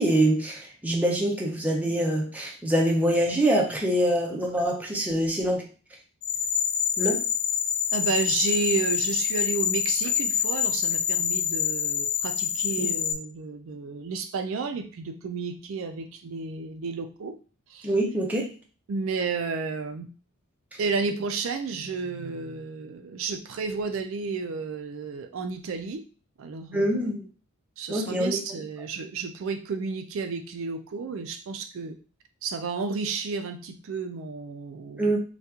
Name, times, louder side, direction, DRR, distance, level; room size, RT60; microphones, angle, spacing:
voice 1, 0.0-5.6 7.0-7.2 12.8-12.9 17.8-18.5 26.7-27.3 27.9-28.4 35.0-35.2, right 1 dB, 5° right, -1 dB, 0.5 m, -24 dB
sound 1, 6.2-13.1, left 8 dB, 70° left, 0.4 m, -26 dB
voice 2, 7.9-17.3 17.7-17.9 18.9-20.1 20.8-26.0 26.4-27.1 27.8-32.0 32.4-35.2, right 4 dB, 65° right, 7 dB, 0.4 m, -32 dB
2.8 x 2.3 x 3.5 m, 0.37 s
head